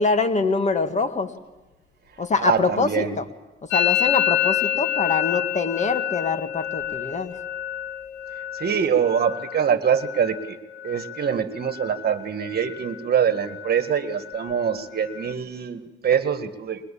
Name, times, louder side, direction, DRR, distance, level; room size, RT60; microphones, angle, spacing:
voice 1, 0.0-1.3 2.2-3.2 3.7-7.3, left 4 dB, 35° left, 8 dB, 1.8 m, -24 dB
voice 2, 2.4-3.1 8.5-10.6 10.8-16.8, right 8 dB, 50° right, 9 dB, 1.8 m, -24 dB
Musical instrument, 3.7-11.4 11.6-12.2 12.4-13.0 13.3-15.3, left 12 dB, 75° left, 2.6 m, -28 dB
22.0 x 21.5 x 8.6 m, 1.1 s
cardioid pair, 90°, 20 cm